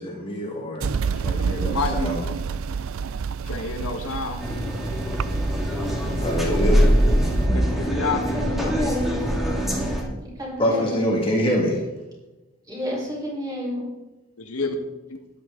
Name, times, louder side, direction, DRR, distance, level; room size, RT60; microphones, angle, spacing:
voice 1, 0.0-0.9 1.2-2.2 6.2-6.9 10.6-11.8, equal, 25° left, -2 dB, 2.1 m, -25 dB
sound 1, 0.8-7.5, right 5 dB, 65° right, 0.4 m, -29 dB
voice 2, 1.7-2.2 3.4-4.4 7.5-8.2 14.4-14.7, left 4 dB, 80° left, 3 dB, 1.7 m, -28 dB
sound 2, 4.4-10.0, equal, ahead, 2.2 m, -22 dB
voice 3, 8.1-9.3 10.0-11.1 12.6-13.9, equal, 15° right, -5 dB, 4.6 m, -30 dB
13.0 x 11.0 x 3.9 m, 1.1 s
head